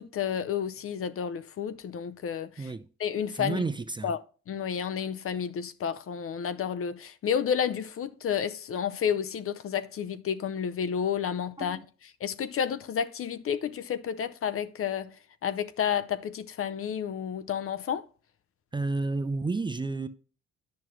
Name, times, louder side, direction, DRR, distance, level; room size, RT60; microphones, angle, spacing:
voice 1, 0.0-2.7 3.0-3.7 4.0-4.2 4.5-11.8 12.2-15.1 15.4-18.0, left 8 dB, 50° left, 0.5 m, -31 dB
voice 2, 3.3-4.1 11.6-11.8 18.7-20.1, right 3 dB, 15° right, 0.4 m, -31 dB
9.2 x 6.1 x 3.1 m
cardioid pair, 90°, 30 cm